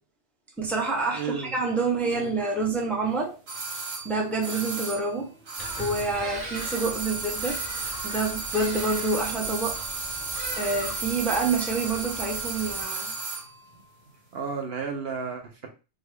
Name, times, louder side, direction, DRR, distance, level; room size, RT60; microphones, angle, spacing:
voice 1, 0.6-3.4 4.0-5.3 5.8-7.6 8.0-9.8 10.6-13.1, right 3 dB, ahead, 0.7 m, -27 dB
voice 2, 1.1-1.6 2.1-2.3 14.3-15.7, right 5 dB, 60° right, 0.8 m, -33 dB
sound 1, 3.5-6.2 6.5-13.5 13.7-13.8, right 4 dB, 85° right, 1.7 m, -33 dB
Bird vocalization bird call bird song, 5.6-12.8, right 2 dB, 45° right, 1.4 m, -40 dB
5.0 x 2.2 x 3.3 m
omnidirectional pair, 1.3 m